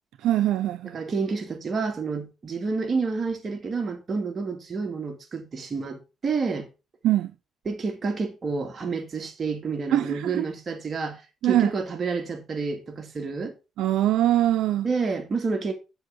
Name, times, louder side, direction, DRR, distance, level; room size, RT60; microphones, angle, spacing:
voice 1, 0.2-1.0 7.0-7.3 9.9-10.4 11.4-11.7 13.8-14.9, right 13 dB, 85° right, 0.6 m, -22 dB
voice 2, 0.9-6.7 7.7-13.5 14.8-15.7, right 4 dB, 40° right, 2.3 m, -29 dB
8.0 x 6.9 x 3.8 m
cardioid pair, 90°, 0 cm